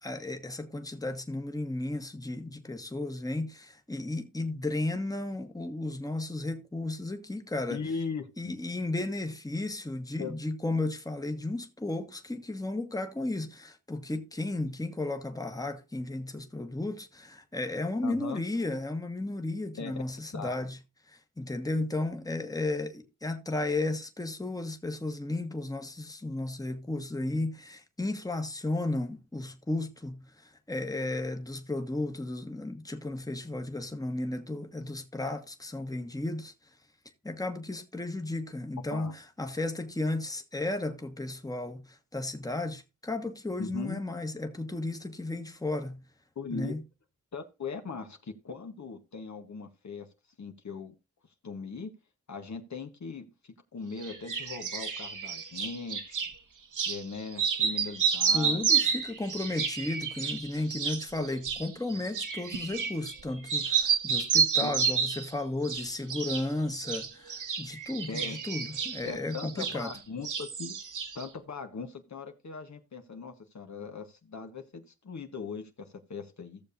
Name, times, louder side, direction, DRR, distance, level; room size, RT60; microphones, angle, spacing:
voice 1, 0.0-7.8 8.4-20.8 21.4-36.5 37.2-46.0 46.5-46.8 58.3-69.9, left 2 dB, 10° left, 1.2 m, -34 dB
voice 2, 7.7-8.6 10.2-10.3 18.0-18.4 19.8-19.9 20.3-20.6 38.9-39.1 43.6-44.0 46.3-46.8 47.3-50.1 50.4-50.9 51.4-51.9 52.3-56.2 56.9-58.8 64.6-64.7 68.1-68.4 69.0-70.8 71.1-76.6, left 4 dB, 65° left, 1.3 m, -39 dB
sound 1, 54.0-56.3 56.7-57.0 57.3-63.2 63.5-65.3 65.6-66.5 66.7-70.0 70.2-71.3, right 6 dB, 75° right, 1.3 m, -30 dB
15.5 x 6.9 x 2.6 m
cardioid pair, 65°, 31 cm